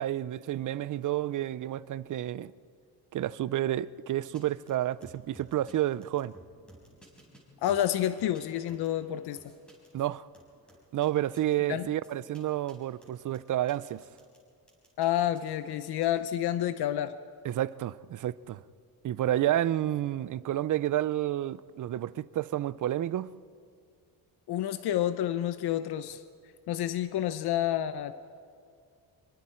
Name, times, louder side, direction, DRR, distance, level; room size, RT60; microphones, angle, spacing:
voice 1, 0.0-2.5 3.1-6.3 9.9-10.3 10.9-14.0 17.4-18.6 19.0-23.3, right 13 dB, 55° right, 0.5 m, -30 dB
sound 1, 4.3-4.4 4.7-4.8 5.0-5.7 6.0-7.4 7.7-9.9 10.3-11.1 11.3-11.5 12.0-12.4 12.7-12.8 13.0-14.4 14.7-16.1, right 1 dB, ahead, 5.3 m, -55 dB
voice 2, 7.6-9.4 11.7-11.9 15.0-17.2 24.5-26.2 26.7-28.1, left 11 dB, 90° left, 0.8 m, -29 dB
26.0 x 23.5 x 4.4 m
wide cardioid pair, 160°, 38 cm